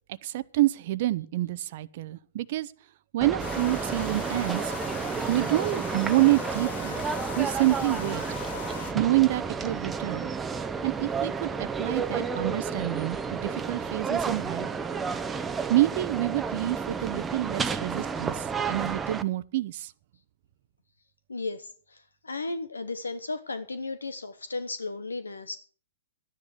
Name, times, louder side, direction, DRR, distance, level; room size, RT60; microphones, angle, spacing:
voice 1, 0.2-2.7 3.1-4.7 5.3-7.0 7.4-8.2 8.9-10.3 10.8-14.7 15.7-19.9, right 16 dB, 50° right, 0.7 m, -27 dB
sound 1, 3.2-19.2, right 5 dB, 15° right, 0.8 m, -31 dB
sound 2, 3.4-8.9, left 10 dB, 55° left, 0.8 m, -40 dB
voice 2, 17.9-18.3 21.3-25.6, left 3 dB, 85° left, 1.0 m, -35 dB
13.0 x 10.0 x 6.5 m
figure-of-eight pair, 115°, 0 cm